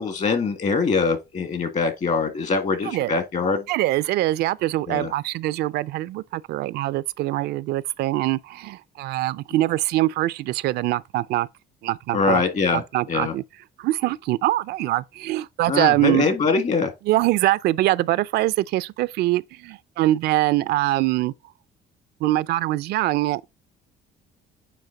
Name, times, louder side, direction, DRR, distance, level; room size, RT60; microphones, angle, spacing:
voice 1, 0.0-3.7 4.9-5.1 12.1-13.3 15.7-16.9, left 4 dB, 45° left, 1.9 m, -23 dB
voice 2, 3.7-11.5 11.8-12.4 12.7-13.4 13.8-16.3 17.1-21.3 22.2-23.5, right 16 dB, 75° right, 0.4 m, -23 dB
9.2 x 3.2 x 3.9 m
cardioid pair, 110°, 17 cm